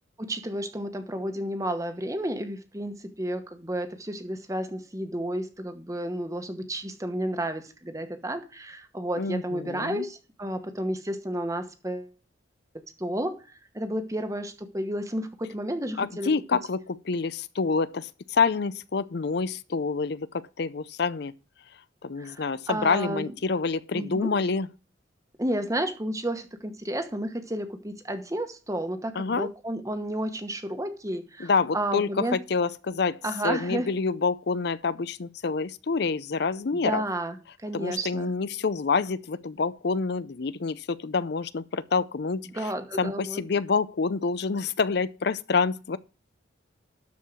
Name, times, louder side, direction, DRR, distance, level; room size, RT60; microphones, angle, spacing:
voice 1, 0.2-12.1 13.0-13.4 13.7-16.3 22.2-23.3 23.9-24.3 25.4-32.4 33.2-33.9 36.7-38.3 42.5-43.4, right 1 dB, 15° right, 1.1 m, -32 dB
voice 2, 9.2-10.0 16.0-21.3 22.0-24.7 29.2-29.5 31.4-37.0 37.7-42.7 43.0-46.0, left 4 dB, 55° left, 0.5 m, -27 dB
12.5 x 4.6 x 6.2 m
head